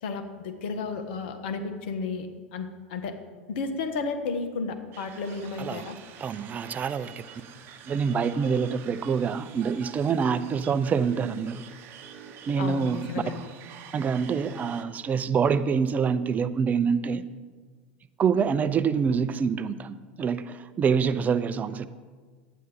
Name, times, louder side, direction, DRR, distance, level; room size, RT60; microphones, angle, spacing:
voice 1, 0.0-3.1 3.5-6.0 12.6-13.5, left 4 dB, 65° left, 7 dB, 1.2 m, -33 dB
sound 1, 4.9-14.8, right 8 dB, 45° right, 1.0 m, -47 dB
voice 2, 6.2-7.2 7.9-11.6 12.5-13.0 13.9-17.2 18.2-21.9, right 6 dB, 30° right, 13 dB, 0.5 m, -26 dB
11.0 x 9.1 x 4.2 m, 1.5 s
hypercardioid pair, 90°, 6 cm